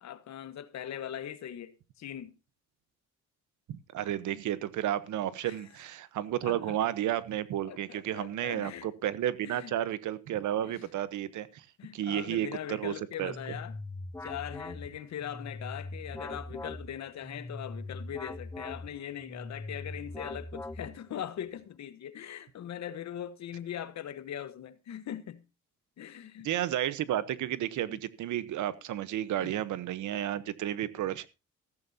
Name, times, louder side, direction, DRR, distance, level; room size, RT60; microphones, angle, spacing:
voice 1, 0.0-2.3 5.4-5.7 6.4-6.8 7.6-8.9 9.4-9.8 10.6-10.9 11.8-13.8 14.2-25.4 26.0-26.5 27.8-28.0 29.4-29.6, left 10 dB, 65° left, 1.3 m, -41 dB
voice 2, 3.7-11.7 11.9-12.9 13.2-13.3 26.4-31.3, right 12 dB, 75° right, 1.0 m, -32 dB
sound 1, 13.2-21.2, left 2 dB, 10° left, 0.6 m, -41 dB
14.5 x 14.0 x 2.8 m
cardioid pair, 90°, 30 cm